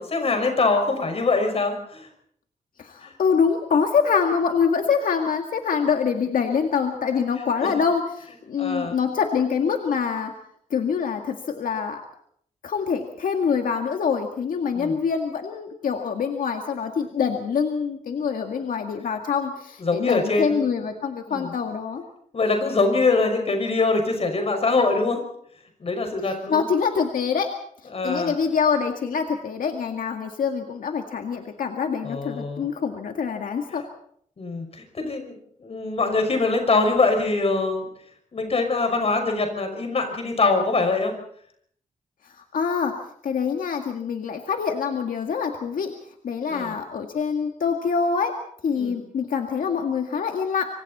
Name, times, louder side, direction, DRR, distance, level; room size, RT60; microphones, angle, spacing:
voice 1, 0.0-2.1 3.0-3.1 7.6-7.8 8.6-9.0 14.7-15.0 19.8-20.7 21.3-21.5 22.3-25.2 25.8-26.7 27.9-28.4 32.0-32.7 34.4-37.9 38.3-41.1 46.5-46.8 48.8-49.0, left 3 dB, 45° left, 5 dB, 5.7 m, -23 dB
voice 2, 2.8-10.3 10.7-12.0 12.6-22.0 26.2-27.5 28.0-33.9 42.5-42.9 43.2-45.9 46.2-48.3 48.6-50.7, left 6 dB, 85° left, 4 dB, 2.0 m, -25 dB
26.0 x 25.5 x 4.2 m, 0.64 s
wide cardioid pair, 135°, 14 cm